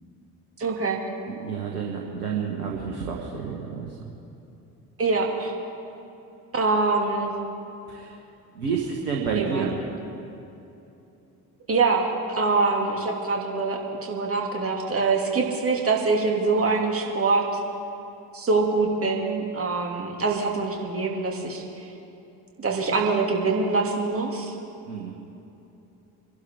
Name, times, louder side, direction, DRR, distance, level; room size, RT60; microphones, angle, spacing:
voice 1, 0.6-1.0 5.0-5.5 6.5-7.3 9.4-9.7 11.7-17.4 18.3-21.8 22.6-24.5, right 3 dB, 30° right, 0 dB, 2.7 m, -24 dB
voice 2, 1.3-4.1 7.9-8.2 8.5-9.7 24.9-25.1, right 6 dB, 75° right, -1 dB, 1.7 m, -30 dB
25.5 x 11.5 x 3.7 m, 2.8 s
figure-of-eight pair, 55°, 48 cm